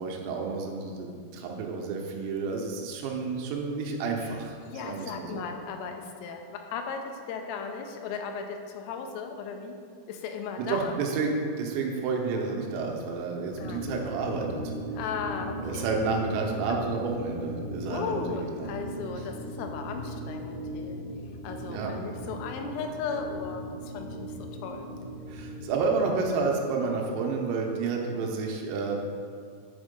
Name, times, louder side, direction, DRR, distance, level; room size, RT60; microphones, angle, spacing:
voice 1, 0.0-4.6 4.8-5.4 10.6-14.6 15.6-18.7 21.7-21.9 25.3-29.0, right 4 dB, 90° right, 1 dB, 3.6 m, -30 dB
voice 2, 4.6-7.0 7.3-9.8 10.1-11.0 13.6-13.9 14.9-15.9 17.9-21.0 21.4-24.3 24.6-24.9 25.8-25.9, left 5 dB, 85° left, 4 dB, 3.3 m, -36 dB
sound 1, 13.5-26.3, equal, 65° left, 1.1 m, -38 dB
9.5 x 4.5 x 5.2 m, 2.2 s
omnidirectional pair, 5.8 m